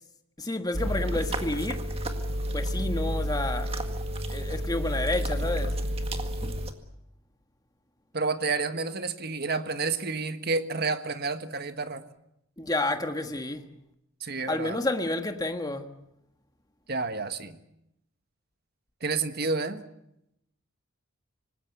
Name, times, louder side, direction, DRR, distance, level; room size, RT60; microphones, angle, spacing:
voice 1, 0.4-1.8 2.5-3.7 4.3-5.8 12.6-13.7 14.5-15.9, left 2 dB, 20° left, 1.5 m, -30 dB
sound 1, 0.7-6.7, equal, 30° right, 1.9 m, -30 dB
voice 2, 8.1-12.0 14.2-14.8 16.9-17.6 19.0-19.8, right 4 dB, 45° right, 1.4 m, -30 dB
25.0 x 20.0 x 8.3 m
head